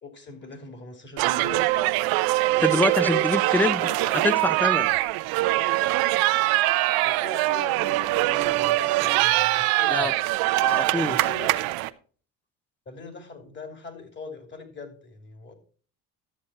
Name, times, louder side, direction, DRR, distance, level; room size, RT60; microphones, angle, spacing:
voice 1, 0.0-1.9 2.6-4.3 7.0-10.1 11.1-11.6 12.9-15.5, left 3 dB, 30° left, 2.8 m, -41 dB
sound 1, 1.2-11.9, right 18 dB, 90° right, 0.7 m, -23 dB
voice 2, 2.6-3.8 4.2-5.0 9.9-10.1 10.6-11.3, left 2 dB, 5° left, 0.6 m, -25 dB
12.5 x 7.6 x 4.2 m
cardioid pair, 110°, 36 cm